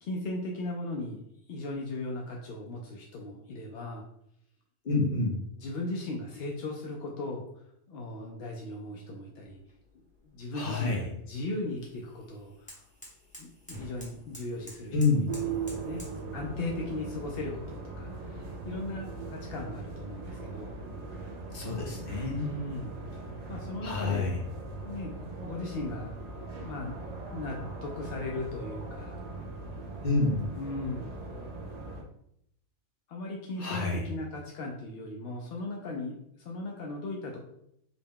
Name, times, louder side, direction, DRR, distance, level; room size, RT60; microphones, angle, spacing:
voice 1, 0.0-1.2 1.5-4.0 5.1-5.3 5.6-7.4 7.9-9.6 9.9-12.8 13.4-16.0 16.3-20.7 22.3-23.0 23.5-24.3 24.8-26.1 26.6-27.0 27.3-29.2 30.5-31.1 33.1-37.4, left 2 dB, 65° left, -1 dB, 0.6 m, -37 dB
voice 2, 4.8-5.4 10.5-11.0 14.9-15.3 21.5-22.6 23.8-24.3 30.0-30.5 33.6-34.1, left 3 dB, 45° left, -1 dB, 0.9 m, -28 dB
sound 1, 9.4-16.2, equal, 5° left, 0.8 m, -51 dB
sound 2, 15.3-32.0, right 3 dB, 70° right, 0.3 m, -40 dB
4.0 x 2.2 x 3.6 m, 0.74 s
omnidirectional pair, 1.5 m